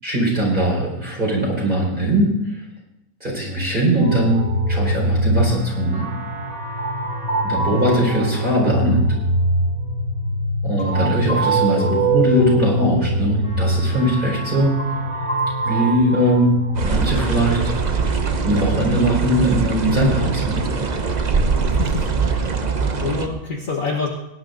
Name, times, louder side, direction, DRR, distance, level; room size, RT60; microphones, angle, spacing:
voice 1, 0.0-2.3 3.2-4.4 4.7-6.1 7.4-9.0 10.6-14.7 15.6-16.5 16.8-17.6 18.4-20.6, right 1 dB, 25° right, -3 dB, 4.9 m, -20 dB
sound 1, 4.0-16.8, right 1 dB, 80° right, 4.3 m, -23 dB
sound 2, 16.7-23.3, right 4 dB, 40° right, 0.6 m, -22 dB
voice 2, 21.7-22.4 22.8-24.1, left 4 dB, 50° left, 1 dB, 1.5 m, -27 dB
18.0 x 10.5 x 3.9 m, 0.87 s
omnidirectional pair, 1.9 m